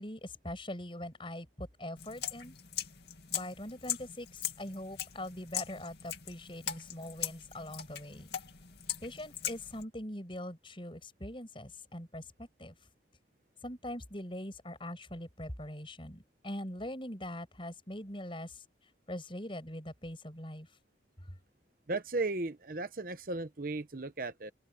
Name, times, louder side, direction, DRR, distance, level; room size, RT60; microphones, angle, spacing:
voice 1, 0.0-2.6 3.3-8.4 9.0-12.7 13.6-18.6 19.1-20.7, left 1 dB, 30° left, 6.4 m, -42 dB
sound 1, 2.0-9.8, left 10 dB, 65° left, 2.4 m, -40 dB
voice 2, 21.9-24.5, right 2 dB, 50° right, 1.0 m, -35 dB
open air
head